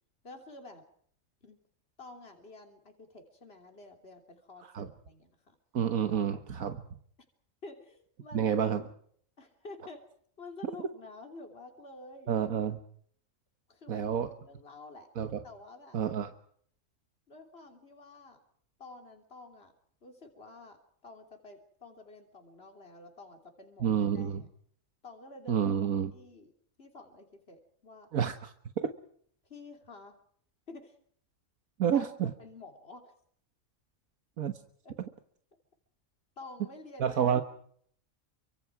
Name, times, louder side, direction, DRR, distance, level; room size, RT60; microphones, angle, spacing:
voice 1, 0.2-0.8 1.4-1.6 2.0-5.6 6.1-6.4 7.6-8.6 9.4-10.0 10.4-12.3 13.7-15.1 15.4-16.0 17.3-18.4 18.8-19.7 20.0-20.8 21.0-24.3 25.0-26.5 26.8-28.1 29.4-30.1 30.7-31.0 31.9-33.1 34.8-34.9 36.4-37.4, left 3 dB, 45° left, 4 dB, 3.5 m, -50 dB
voice 2, 5.7-6.8 8.3-8.8 12.3-12.8 13.9-14.3 15.2-15.4 15.9-16.3 23.8-24.4 25.5-26.1 28.1-28.5 31.8-32.3 34.4-34.5 37.0-37.4, right 8 dB, 85° right, 8 dB, 1.7 m, -29 dB
29.5 x 25.0 x 4.8 m, 0.63 s
omnidirectional pair, 1.4 m